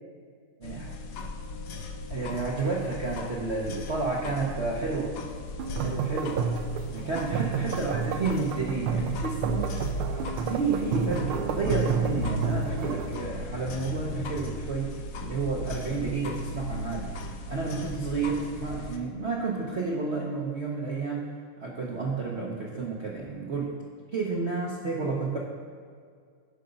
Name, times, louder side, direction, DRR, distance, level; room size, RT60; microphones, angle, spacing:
sound 1, 0.6-19.0, left 2 dB, 90° left, 0.7 m, -37 dB
voice 1, 0.6-0.9 2.1-5.2 5.8-6.5 6.9-10.2 10.5-17.2 17.5-21.3 21.6-23.8 24.1-25.4, right 4 dB, 55° right, -3 dB, 0.7 m, -31 dB
sound 2, 5.6-13.2, right 6 dB, 80° right, 1.5 m, -30 dB
9.0 x 5.8 x 5.2 m, 2.1 s
omnidirectional pair, 2.4 m